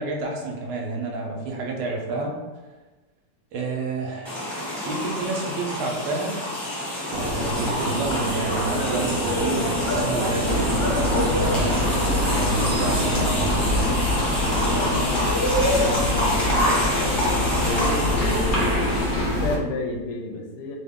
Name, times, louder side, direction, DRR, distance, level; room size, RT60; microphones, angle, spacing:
voice 1, 0.0-2.4 3.5-4.3 4.8-6.4 7.2-12.1 12.4-13.6, right 3 dB, 85° right, 0 dB, 1.2 m, -29 dB
sound 1, 4.2-19.4, left 1 dB, 20° left, 1.0 m, -26 dB
sound 2, 7.1-14.0, right 1 dB, 65° right, 0.7 m, -29 dB
sound 3, 10.4-19.6, left 1 dB, 50° left, 0.6 m, -25 dB
voice 2, 12.0-12.4 14.4-16.8 17.6-20.8, left 2 dB, 75° left, 1 dB, 1.1 m, -32 dB
2.8 x 2.6 x 3.5 m, 1.2 s
omnidirectional pair, 1.9 m